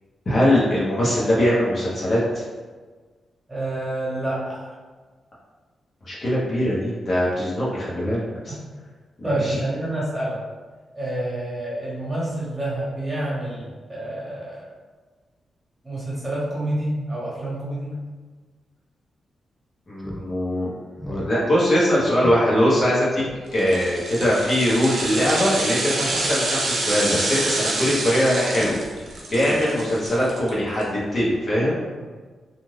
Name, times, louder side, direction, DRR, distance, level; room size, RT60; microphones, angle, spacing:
voice 1, 0.3-2.4 6.0-8.6 9.2-9.6 19.9-20.7 21.0-23.2 23.5-31.8, equal, 50° left, -7 dB, 1.0 m, -22 dB
voice 2, 3.5-4.7 9.2-10.4 10.9-14.5 15.8-17.9, right 1 dB, 20° right, -8 dB, 1.1 m, -28 dB
Speech synthesizer, 20.0-20.2 20.6-20.7 21.0-21.3 21.6-21.7 22.2-22.4 22.7-22.8 23.1-23.4 24.1-24.4 25.1-25.7 26.1-26.7 27.0-27.2 27.8-27.9 28.6-29.1 29.4-29.9, left 1 dB, 10° left, 0.4 m, -35 dB
sound 1, 23.5-30.8 31.2-31.3, right 2 dB, 80° right, 0.6 m, -27 dB
2.5 x 2.5 x 3.2 m, 1.4 s
cardioid pair, 95°, 0 cm